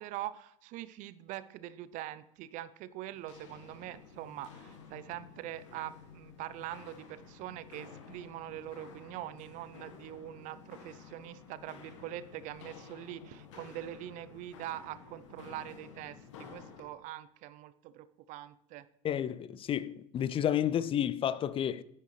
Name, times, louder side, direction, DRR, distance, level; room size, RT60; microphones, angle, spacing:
voice 1, 0.0-18.9, right 13 dB, 55° right, 0.6 m, -43 dB
Walk footsteps, 3.1-16.9, left 6 dB, 75° left, 1.4 m, -52 dB
voice 2, 19.0-21.8, left 10 dB, 35° left, 0.5 m, -31 dB
10.0 x 10.0 x 3.2 m
hypercardioid pair, 75°, 16 cm